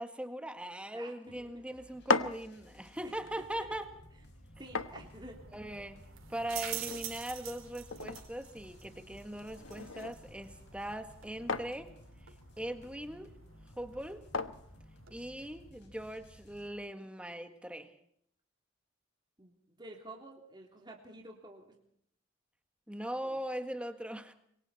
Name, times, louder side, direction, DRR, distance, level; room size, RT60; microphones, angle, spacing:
voice 1, 0.0-3.9 5.5-6.0 6.3-11.9 12.6-13.3 13.8-14.2 15.1-17.9 22.9-24.3, right 1 dB, 5° right, 8 dB, 1.7 m, -40 dB
voice 2, 0.9-1.6 3.0-3.7 4.6-5.4 19.4-21.8 23.2-23.4, right 1 dB, 20° right, 0 dB, 3.3 m, -50 dB
sound 1, 1.2-16.7, equal, 60° left, 5.8 m, -57 dB
sound 2, 1.8-15.7, left 3 dB, 85° left, 1.2 m, -41 dB
sound 3, 4.5-15.2, right 10 dB, 90° right, 4.4 m, -48 dB
27.0 x 23.5 x 4.3 m, 0.68 s
head